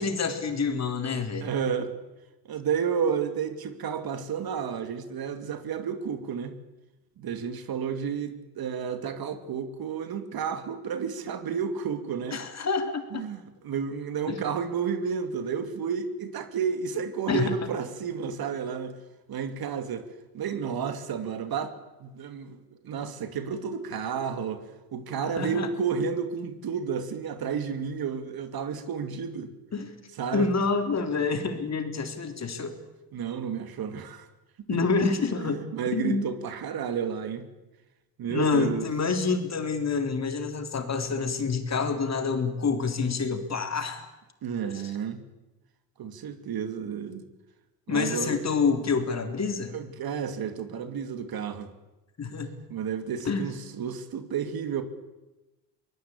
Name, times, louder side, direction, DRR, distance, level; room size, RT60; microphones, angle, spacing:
voice 1, 0.0-1.5 12.3-13.2 14.3-14.4 17.3-17.6 25.4-25.7 29.7-29.9 30.3-32.8 34.7-35.6 35.9-36.2 38.3-44.1 44.6-44.8 47.9-49.7 52.2-52.5 53.2-53.5, left 4 dB, 35° left, 7 dB, 3.8 m, -27 dB
voice 2, 1.4-1.9 2.4-6.6 7.2-12.4 13.1-19.0 19.3-20.1 20.3-21.7 22.0-24.7 24.9-29.5 30.2-30.5 33.1-34.3 35.4-37.5 38.2-38.9 44.4-45.2 46.0-47.2 47.9-48.5 49.7-51.7 52.7-54.8, right 7 dB, 55° right, 9 dB, 2.7 m, -31 dB
24.0 x 20.5 x 8.6 m, 1.0 s
supercardioid pair, 85°, 45 cm